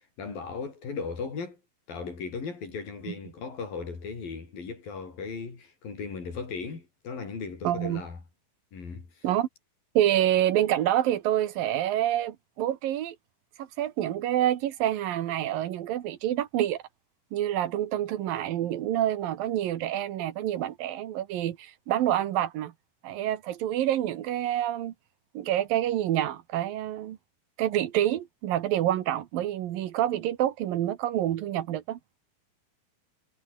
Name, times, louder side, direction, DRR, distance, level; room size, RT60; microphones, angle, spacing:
voice 1, 0.2-1.6 1.9-8.2 8.7-9.3, left 5 dB, 65° left, 7.7 m, -37 dB
voice 2, 7.6-8.0 9.2-9.5 9.9-13.2 13.6-16.8 17.3-22.7 23.0-24.9 25.3-27.2 27.6-32.0, right 12 dB, 70° right, 3.0 m, -27 dB
omnidirectional pair, 4.3 m